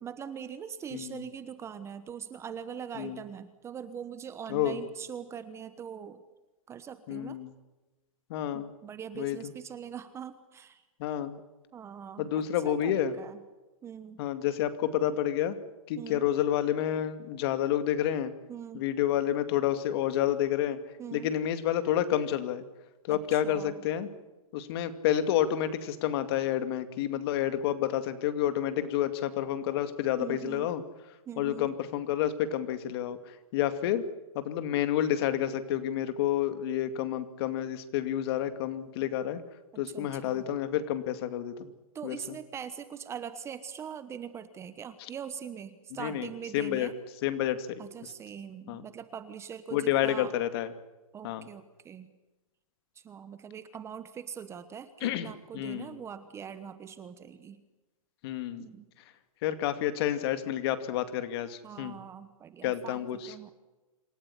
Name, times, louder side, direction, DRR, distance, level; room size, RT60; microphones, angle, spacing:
voice 1, 0.0-6.2 6.7-7.4 8.5-10.8 11.7-13.4 13.8-14.2 16.0-16.3 18.5-18.9 21.0-21.3 23.1-23.8 30.2-30.7 31.3-31.7 39.7-40.4 41.9-46.9 47.8-50.3 51.1-52.1 52.9-57.6 58.6-58.9 61.6-63.5, right 8 dB, 15° right, 12 dB, 1.1 m, -42 dB
voice 2, 0.9-1.2 3.0-3.2 4.5-4.8 7.1-7.5 8.3-8.7 9.1-9.5 11.0-11.4 12.2-13.1 14.2-15.6 15.9-18.3 18.7-20.8 21.1-22.6 23.0-24.1 24.5-30.8 31.4-34.0 34.3-39.4 39.8-41.7 42.0-42.4 46.0-46.9 47.2-47.8 48.7-48.8 49.7-50.7 51.2-51.5 55.0-56.0 58.2-58.7 59.4-62.0 62.6-63.5, left 11 dB, 45° left, 10 dB, 2.4 m, -29 dB
27.5 x 14.5 x 9.9 m, 1.1 s
hypercardioid pair, 150°, 18 cm